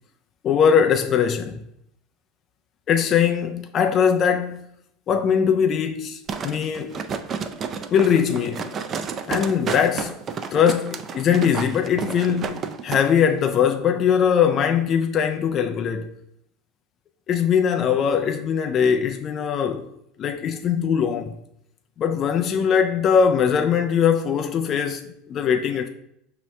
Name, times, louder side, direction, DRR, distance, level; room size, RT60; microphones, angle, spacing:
voice 1, 0.4-1.6 2.9-4.7 5.1-7.0 7.9-8.7 9.3-10.2 10.5-16.1 17.3-19.9 20.2-21.4 22.0-25.9, left 7 dB, 40° left, 0.4 m, -21 dB
sound 1, 6.3-13.0 13.4-13.5, right 6 dB, 35° right, 0.4 m, -31 dB
5.9 x 2.9 x 3.2 m
supercardioid pair, 110°, 0 cm